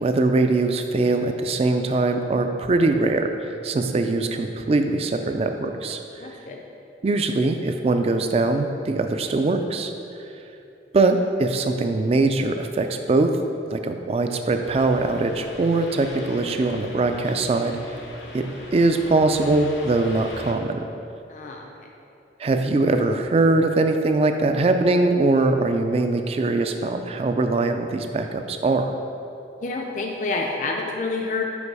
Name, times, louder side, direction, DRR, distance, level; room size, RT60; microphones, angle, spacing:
voice 1, 0.0-6.0 7.0-9.9 10.9-13.3 13.7-17.8 18.3-18.4 18.7-20.8 22.4-28.9, right 2 dB, 35° right, 6 dB, 0.3 m, -22 dB
voice 2, 6.2-6.6 21.3-21.7 29.6-31.4, left 3 dB, 45° left, 1 dB, 0.4 m, -28 dB
sound 1, 14.6-20.5, left 1 dB, 85° left, 0.8 m, -40 dB
5.2 x 4.6 x 4.8 m, 2.7 s
head